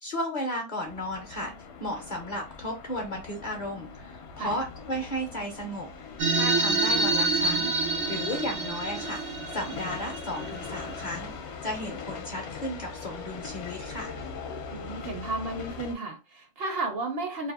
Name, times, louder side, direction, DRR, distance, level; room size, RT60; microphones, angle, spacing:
voice 1, 0.0-1.5 1.8-14.2, equal, 50° left, 0.6 m, -34 dB
sound 1, 0.8-16.0, left 5 dB, 70° left, 0.8 m, -41 dB
sound 2, 6.2-11.1, right 3 dB, 85° right, 1.1 m, -27 dB
voice 2, 14.7-17.5, right 2 dB, 65° right, 0.7 m, -33 dB
2.6 x 2.3 x 2.2 m
omnidirectional pair, 1.3 m